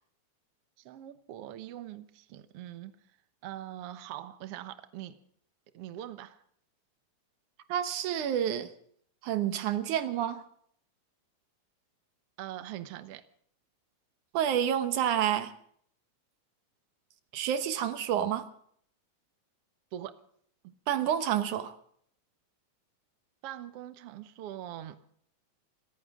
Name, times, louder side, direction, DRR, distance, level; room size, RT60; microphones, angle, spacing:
voice 1, 0.8-2.9 3.4-5.2 5.7-6.4 12.4-13.2 19.9-20.2 20.6-20.7 23.4-25.0, right 12 dB, 65° right, 1.8 m, -42 dB
voice 2, 7.7-8.7 9.2-10.4 14.3-15.5 17.3-18.5 20.9-21.7, right 10 dB, 85° right, 2.6 m, -29 dB
27.0 x 14.5 x 3.7 m
omnidirectional pair, 3.4 m